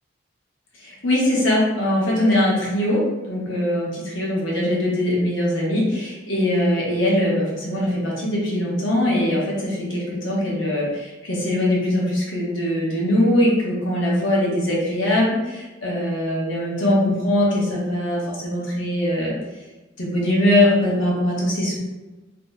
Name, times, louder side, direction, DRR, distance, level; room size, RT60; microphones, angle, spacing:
voice 1, 0.8-19.3 20.0-21.8, left 1 dB, 80° left, -4 dB, 1.0 m, -21 dB
2.7 x 2.1 x 3.4 m, 1.1 s
head